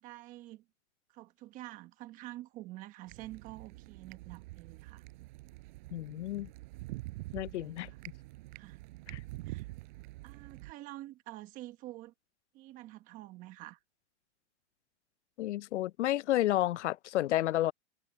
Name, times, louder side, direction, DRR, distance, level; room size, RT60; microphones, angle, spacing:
voice 1, 0.0-0.6 1.1-5.0 7.3-8.0 8.5-8.8 9.4-9.7 10.2-12.1 12.5-13.8, right 16 dB, 25° right, 1.2 m, -48 dB
sound 1, 3.1-10.7, right 21 dB, 45° right, 5.2 m, -46 dB
voice 2, 5.9-6.5 7.3-7.9 9.1-9.2 15.4-17.7, left 14 dB, 90° left, 0.5 m, -31 dB
hypercardioid pair, 160°, 34 cm